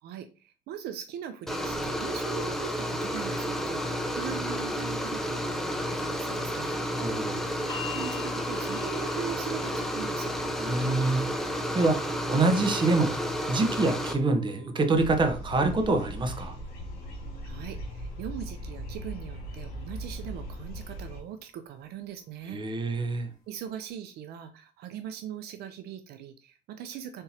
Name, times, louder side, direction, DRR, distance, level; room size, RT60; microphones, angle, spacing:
voice 1, 0.0-6.8 7.9-10.3 17.4-22.6 23.5-27.2, right 9 dB, 70° right, 0.5 m, -40 dB
sound 1, 1.5-14.1, equal, ahead, 0.6 m, -31 dB
voice 2, 6.9-7.4 10.6-16.6 22.5-23.3, right 3 dB, 30° right, 0.8 m, -26 dB
sound 2, 7.7-19.8 20.8-20.9, left 6 dB, 25° left, 1.9 m, -48 dB
sound 3, 14.9-21.2, equal, 70° left, 1.6 m, -39 dB
4.1 x 3.6 x 2.8 m
cardioid pair, 110°, 17 cm